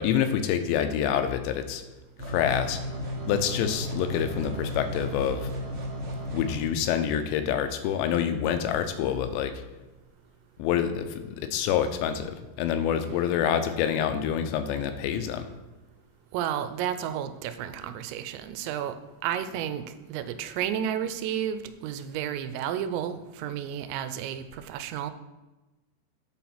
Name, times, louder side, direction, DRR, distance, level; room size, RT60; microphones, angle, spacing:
voice 1, 0.0-1.8 2.3-2.8 3.2-5.5 6.3-9.5 10.6-15.5, left 9 dB, 85° left, 8 dB, 2.8 m, -27 dB
sound 1, 2.2-6.6, equal, 55° right, 1.8 m, -34 dB
voice 2, 16.3-19.0 19.2-25.1, right 9 dB, 85° right, 10 dB, 2.8 m, -32 dB
8.6 x 4.2 x 5.7 m, 1.1 s
omnidirectional pair, 5.1 m